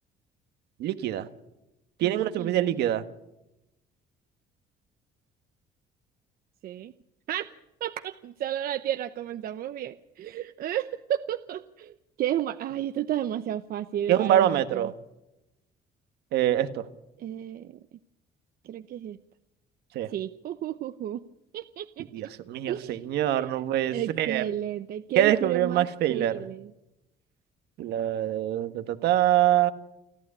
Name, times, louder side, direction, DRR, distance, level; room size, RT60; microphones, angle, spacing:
voice 1, 0.8-1.3 2.0-3.0 14.1-14.9 16.3-16.9 19.9-20.1 22.1-24.4 25.1-26.4 27.8-29.7, right 12 dB, 80° right, 11 dB, 1.5 m, -25 dB
voice 2, 2.0-2.8 6.6-6.9 7.3-7.5 7.8-11.9 12.2-14.9 17.2-17.7 18.6-19.2 20.1-21.2 21.5-22.0 22.7-23.0 23.3-23.5 23.9-26.7, right 11 dB, 60° right, 11 dB, 0.8 m, -32 dB
29.5 x 11.5 x 9.8 m, 0.92 s
cardioid pair, 110°, 17 cm